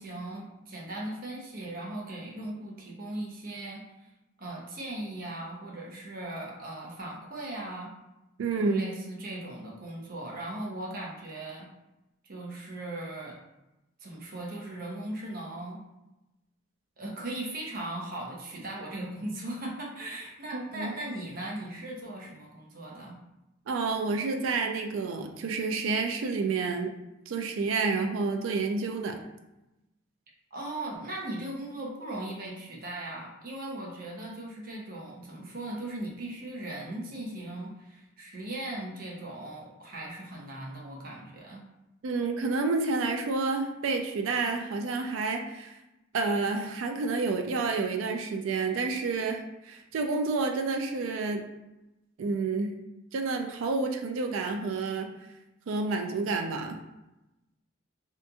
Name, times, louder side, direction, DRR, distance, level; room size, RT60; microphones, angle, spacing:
voice 1, 0.0-3.8 4.4-7.9 8.6-11.7 12.2-13.4 14.0-15.8 17.0-23.2 30.5-41.6, right 1 dB, 45° right, -2 dB, 0.6 m, -38 dB
voice 2, 8.4-8.8 20.5-20.9 23.7-26.9 27.3-29.2 42.0-45.8 46.1-51.4 52.2-52.7 53.1-55.1 55.7-56.8, right 4 dB, 80° right, 4 dB, 0.4 m, -29 dB
2.8 x 2.5 x 2.3 m, 0.96 s
head